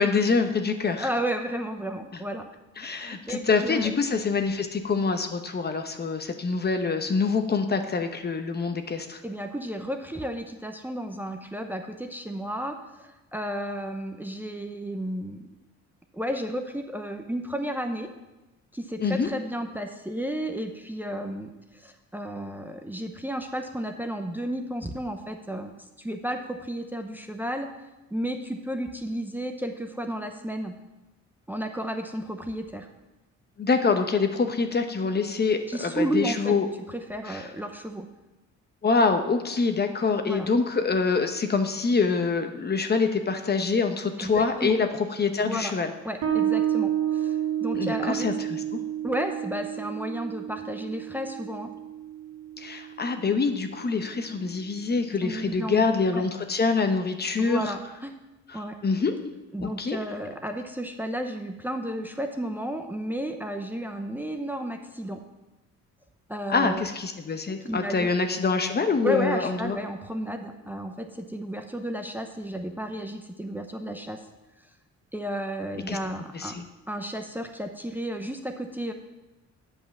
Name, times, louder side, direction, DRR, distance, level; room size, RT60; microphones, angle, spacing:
voice 1, 0.0-1.1 2.8-9.2 19.0-19.3 33.6-36.7 37.3-37.5 38.8-45.9 47.7-48.6 52.6-57.7 58.5-59.1 59.6-60.0 66.5-69.8 75.9-76.0 76.3-76.6, left 4 dB, 35° left, 7 dB, 0.9 m, -25 dB
voice 2, 1.0-2.5 2.8-3.9 9.2-15.5 16.1-18.1 18.7-27.7 28.1-30.7 31.5-32.9 35.7-36.5 36.9-38.1 40.3-40.5 44.2-44.8 45.4-45.7 46.0-48.3 49.0-51.7 55.2-56.2 57.4-58.1 58.5-58.8 59.5-65.2 66.3-66.9 67.7-68.1 69.0-74.2 75.1-76.6 76.9-78.9, equal, 5° right, 5 dB, 0.8 m, -32 dB
Bass guitar, 46.2-53.4, right 11 dB, 80° right, 1.7 m, -30 dB
8.2 x 5.5 x 7.2 m, 1.0 s
cardioid pair, 90°, 30 cm